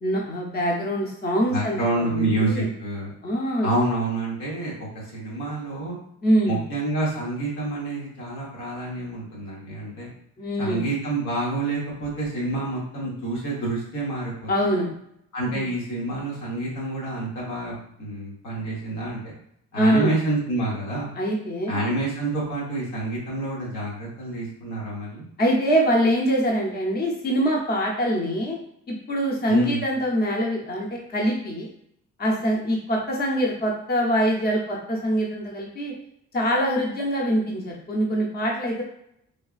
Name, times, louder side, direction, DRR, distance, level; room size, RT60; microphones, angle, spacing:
voice 1, 0.0-2.7 3.2-3.7 6.2-6.6 10.4-10.8 14.5-14.9 15.5-15.7 19.7-20.2 21.1-21.9 25.4-28.6 28.9-31.7 32.2-35.9 36.3-38.8, equal, 30° left, -1 dB, 0.7 m, -24 dB
voice 2, 1.5-3.1 3.6-6.0 6.4-10.1 10.6-14.5 15.3-17.7 18.0-19.3 19.7-21.1 21.7-25.2 29.4-29.8, right 2 dB, 90° left, -5 dB, 1.2 m, -28 dB
3.2 x 2.3 x 2.4 m, 0.73 s
cardioid pair, 90°, 30 cm